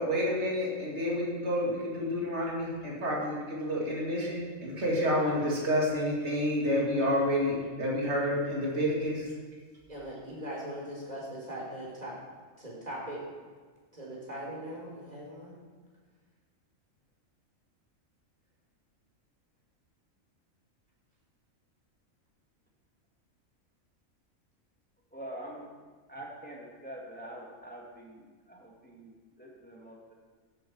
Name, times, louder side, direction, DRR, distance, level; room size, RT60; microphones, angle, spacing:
voice 1, 0.0-9.3, equal, 55° right, -4 dB, 3.1 m, -29 dB
voice 2, 9.9-12.1 12.6-13.2 13.9-15.5, right 1 dB, 30° right, -4 dB, 4.3 m, -40 dB
voice 3, 25.1-25.7 26.1-30.0, right 1 dB, 5° left, -2 dB, 1.9 m, -45 dB
14.5 x 8.9 x 4.7 m, 1.5 s
omnidirectional pair, 1.4 m